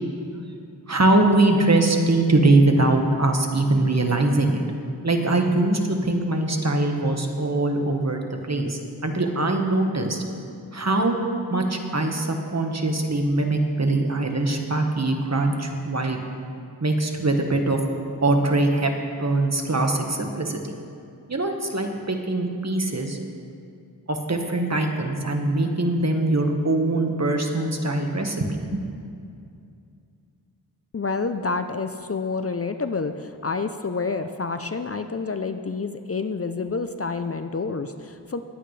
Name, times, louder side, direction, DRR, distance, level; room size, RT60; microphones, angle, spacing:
voice 1, 0.9-4.6 5.0-8.2 8.5-10.2 10.7-11.2 11.5-16.2 16.8-17.8 18.2-18.9 19.2-20.7 21.3-23.2 24.1-28.8, right 2 dB, 40° right, 3 dB, 1.4 m, -22 dB
voice 2, 30.9-38.4, left 4 dB, 35° left, 8 dB, 0.6 m, -28 dB
21.0 x 9.0 x 3.3 m, 2.5 s
cardioid pair, 45°, 40 cm